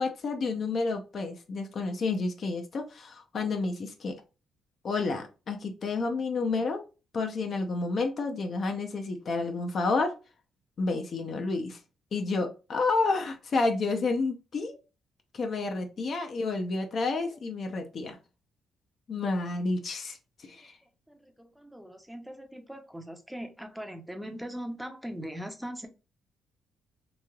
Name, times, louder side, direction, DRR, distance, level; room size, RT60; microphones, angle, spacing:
voice 1, 0.0-4.1 4.8-6.8 7.1-10.1 10.8-11.8 12.1-14.7 15.3-18.2 19.1-20.2 20.4-20.7, left 3 dB, 50° left, 4 dB, 0.6 m, -30 dB
voice 2, 21.1-25.9, equal, 5° right, 6 dB, 0.6 m, -40 dB
3.1 x 2.7 x 2.3 m, 0.31 s
cardioid pair, 90°, 0 cm